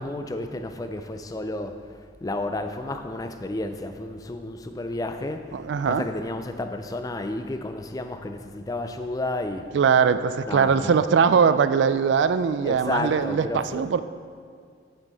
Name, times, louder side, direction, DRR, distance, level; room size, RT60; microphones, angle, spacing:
voice 1, 0.0-1.9 2.2-9.7 10.5-11.0 12.6-14.0, left 2 dB, 20° left, 7 dB, 0.3 m, -32 dB
voice 2, 5.5-6.1 9.7-14.0, right 6 dB, 70° right, 12 dB, 0.3 m, -21 dB
8.9 x 5.6 x 4.0 m, 2.1 s
head